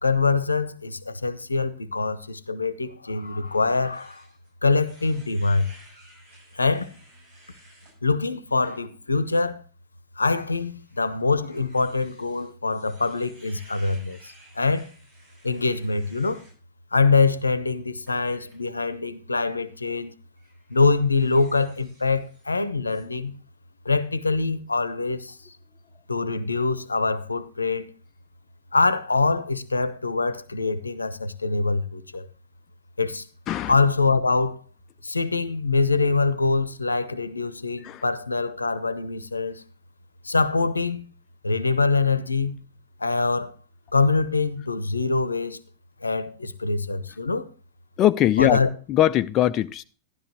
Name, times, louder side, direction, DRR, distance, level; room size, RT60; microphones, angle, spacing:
voice 1, 0.0-4.2 4.6-5.7 6.5-6.9 8.0-9.6 10.2-14.9 15.4-16.5 16.9-20.1 20.7-23.4 23.8-25.4 26.1-27.9 28.7-32.3 33.0-33.3 33.7-34.6 35.0-39.6 40.2-41.0 41.4-42.6 43.0-43.5 43.9-45.6 46.0-47.5 48.4-48.7, left 3 dB, 80° left, 0.7 m, -24 dB
sound 1, 3.2-8.0 8.5-8.8 9.2-9.4 10.4-16.6 18.1-18.7 19.6-19.9 20.4-22.6 22.9-23.0, right 2 dB, 50° right, 7.1 m, -55 dB
voice 2, 48.0-48.6 48.9-49.8, left 13 dB, 35° left, 0.4 m, -21 dB
12.5 x 11.5 x 3.1 m
figure-of-eight pair, 90°, 0 cm